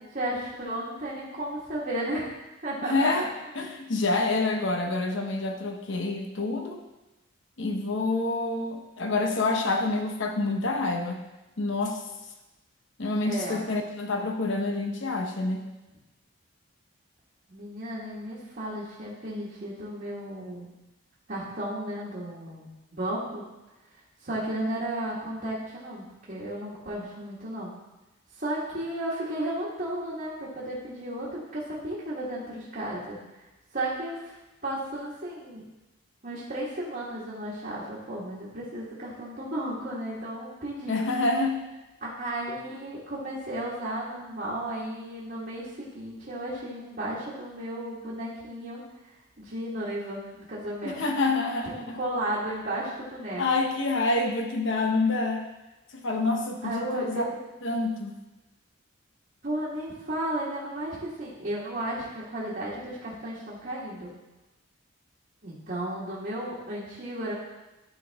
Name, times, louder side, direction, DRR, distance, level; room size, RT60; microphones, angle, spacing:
voice 1, 0.1-2.3 2.6-3.3 13.2-13.6 17.5-20.7 21.3-23.4 24.2-27.7 28.4-33.4 33.7-34.3 34.6-35.6 36.2-41.0 42.0-48.8 49.4-51.0 51.9-53.4 56.6-57.2 59.4-64.1 65.4-67.3, right 1 dB, 45° right, -8 dB, 1.6 m, -34 dB
voice 2, 2.8-3.3 3.5-6.8 7.6-11.2 11.6-12.0 13.0-15.6 40.9-41.6 50.8-52.0 53.4-55.5 55.9-57.2 57.6-58.2, left 2 dB, 60° left, 3 dB, 0.9 m, -27 dB
12.0 x 5.3 x 3.5 m, 1.0 s
head